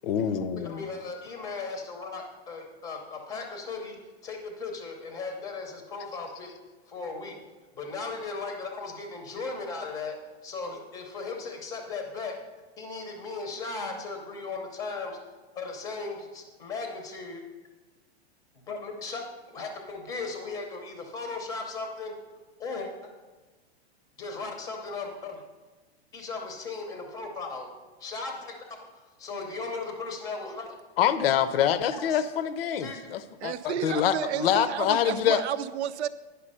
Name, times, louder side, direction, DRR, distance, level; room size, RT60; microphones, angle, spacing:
voice 1, 0.0-0.9 31.0-35.4, left 9 dB, 60° left, 12 dB, 0.6 m, -25 dB
voice 2, 0.6-6.5 6.9-7.3 7.8-10.2 10.4-12.3 12.8-15.2 15.6-17.4 18.7-22.1 22.6-22.9 24.2-25.4 26.1-27.7 28.0-28.8 29.2-30.7 31.9-32.2 32.8-33.0 33.8-33.9, left 4 dB, 10° left, 4 dB, 0.6 m, -37 dB
voice 3, 33.4-36.1, right 10 dB, 85° right, 14 dB, 0.6 m, -32 dB
10.0 x 5.7 x 5.5 m, 1.2 s
supercardioid pair, 175°, 33 cm